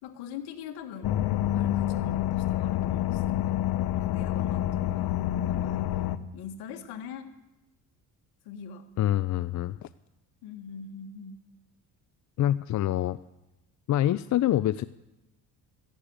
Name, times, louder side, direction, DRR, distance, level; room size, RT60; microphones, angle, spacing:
voice 1, 0.0-1.2 1.5-3.6 3.9-6.1 6.3-7.3 8.4-8.9 10.4-11.5, left 7 dB, 90° left, 6 dB, 1.7 m, -43 dB
sound 1, 1.0-6.2, left 13 dB, 70° left, 0.9 m, -27 dB
voice 2, 9.0-9.9 12.4-13.2 13.9-14.8, left 13 dB, 50° left, 15 dB, 0.5 m, -25 dB
13.5 x 12.0 x 8.7 m, 0.98 s
cardioid pair, 95°, 38 cm